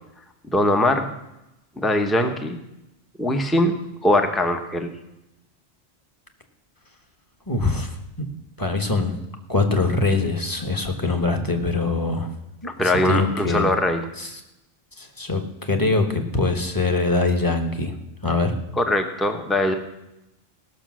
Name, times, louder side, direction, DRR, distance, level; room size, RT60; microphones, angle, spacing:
voice 1, 0.5-1.1 1.8-2.6 3.2-4.9 12.6-14.0 18.8-19.7, left 1 dB, ahead, 6 dB, 0.9 m, -21 dB
voice 2, 7.5-7.9 8.6-9.1 9.5-12.3 12.6-13.7 14.2-14.3 15.0-15.4 15.7-17.9 18.2-18.5, left 3 dB, 20° left, 5 dB, 1.4 m, -23 dB
18.0 x 6.7 x 6.2 m, 0.90 s
omnidirectional pair, 1.2 m